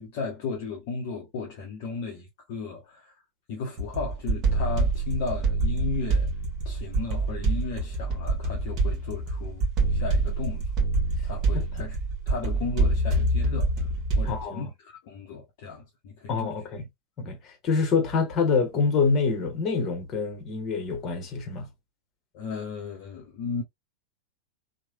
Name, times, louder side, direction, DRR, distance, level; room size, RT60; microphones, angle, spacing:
voice 1, 0.0-3.2 3.5-6.3 6.6-9.6 9.9-10.7 11.2-12.0 12.3-13.7 14.1-16.6 22.3-23.6, left 4 dB, 50° left, 0.7 m, -35 dB
sound 1, 3.8-14.4, right 2 dB, 35° right, 1.1 m, -26 dB
voice 2, 14.2-14.7 16.3-16.9 17.2-21.7, left 5 dB, 30° left, 1.1 m, -26 dB
3.0 x 2.2 x 2.4 m
figure-of-eight pair, 90°, 0 cm